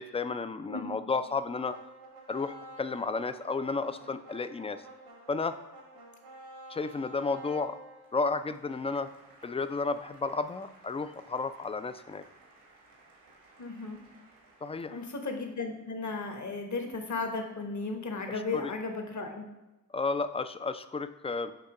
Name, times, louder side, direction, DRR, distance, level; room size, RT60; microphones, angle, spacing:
voice 1, 0.0-1.8 2.3-4.8 5.3-5.6 6.7-7.8 8.1-9.1 9.4-12.2 14.6-15.0 18.3-18.7 19.9-21.5, left 4 dB, 15° left, 11 dB, 0.3 m, -32 dB
voice 2, 0.7-1.0 13.6-14.0 14.9-19.4, left 3 dB, 45° left, 4 dB, 1.1 m, -35 dB
sound 1, 1.6-15.8, right 2 dB, 85° right, 1.6 m, -52 dB
6.7 x 2.8 x 4.8 m, 1.0 s
cardioid pair, 50°, 39 cm